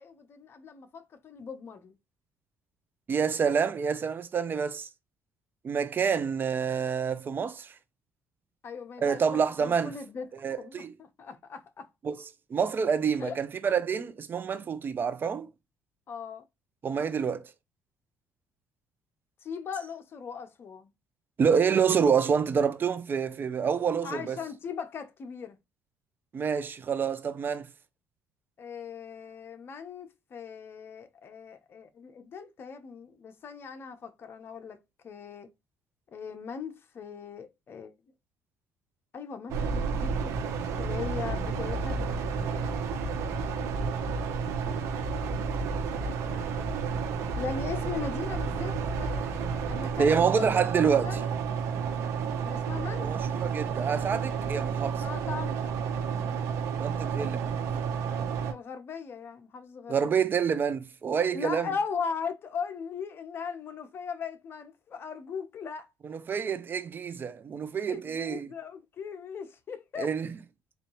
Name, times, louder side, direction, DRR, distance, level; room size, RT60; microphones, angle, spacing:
voice 1, 0.0-1.9 8.6-11.9 13.2-13.4 16.1-16.5 19.4-20.9 24.0-25.6 28.6-34.8 35.0-35.5 36.1-37.9 39.1-42.8 43.6-43.7 45.9-46.8 47.4-49.4 49.7-50.5 50.7-51.2 52.4-53.1 55.0-55.8 57.9-60.2 61.3-65.9 67.9-70.1, left 6 dB, 45° left, 0.9 m, -39 dB
voice 2, 3.1-4.9 5.6-7.7 9.0-9.9 10.4-10.9 12.0-12.2 12.5-15.5 16.8-17.5 21.4-24.4 26.3-27.7 50.0-51.2 53.0-55.0 56.8-57.6 59.9-61.7 66.1-68.5 70.0-70.3, right 6 dB, 40° right, 0.6 m, -27 dB
sound 1, 39.5-58.5, right 5 dB, 75° right, 1.0 m, -31 dB
4.4 x 2.7 x 3.1 m
supercardioid pair, 80°, 5 cm